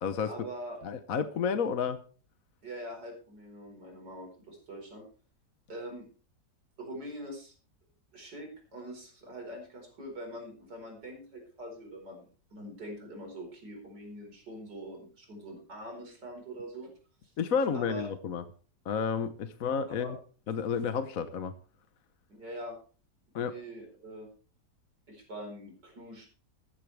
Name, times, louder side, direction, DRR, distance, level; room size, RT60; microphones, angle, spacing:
voice 1, 0.3-0.8 2.6-5.1 5.7-6.1 6.8-7.6 8.1-16.9 17.2-17.3 17.7-18.1 19.9-20.1 22.3-22.8 23.4-24.3 25.1-26.3, right 1 dB, 75° right, 1 dB, 5.4 m, -43 dB
voice 2, 0.8-2.0 17.4-18.4 18.8-20.2 20.5-21.5 23.3-23.5, left 6 dB, 55° left, 9 dB, 1.3 m, -31 dB
15.0 x 14.0 x 3.4 m, 0.39 s
omnidirectional pair, 1.9 m